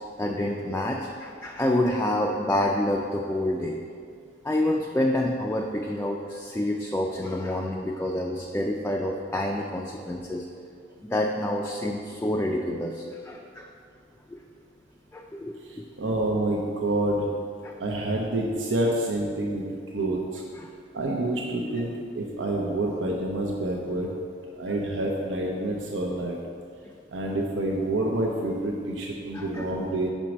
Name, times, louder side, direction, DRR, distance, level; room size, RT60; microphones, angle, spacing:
voice 1, 0.2-3.8 4.4-10.5 11.0-13.7 14.3-14.4 15.1-15.8 17.6-17.8 20.5-20.7 21.8-21.9 29.3-29.7, left 1 dB, 10° left, 0 dB, 0.3 m, -28 dB
voice 2, 15.6-17.3 17.8-19.6 19.9-20.4 20.9-24.1 24.6-26.4 27.1-30.1, right 1 dB, 90° right, -1 dB, 0.7 m, -28 dB
5.2 x 4.5 x 6.0 m, 2.2 s
head